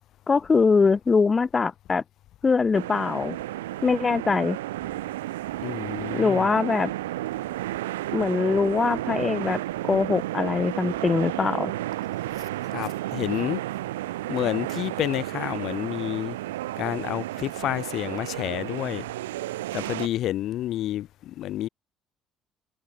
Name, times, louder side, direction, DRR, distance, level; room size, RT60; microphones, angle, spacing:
voice 1, 0.3-2.0 2.4-3.4 3.8-4.6 6.1-6.9 8.1-11.7, left 4 dB, 30° left, 5.0 m, -22 dB
sound 1, 2.7-20.1, right 16 dB, 90° right, 3.6 m, -32 dB
voice 2, 5.6-6.5 12.7-13.6 14.3-16.3 16.8-19.0 19.7-21.7, left 13 dB, 65° left, 4.4 m, -29 dB
hypercardioid pair, 60°, 0 cm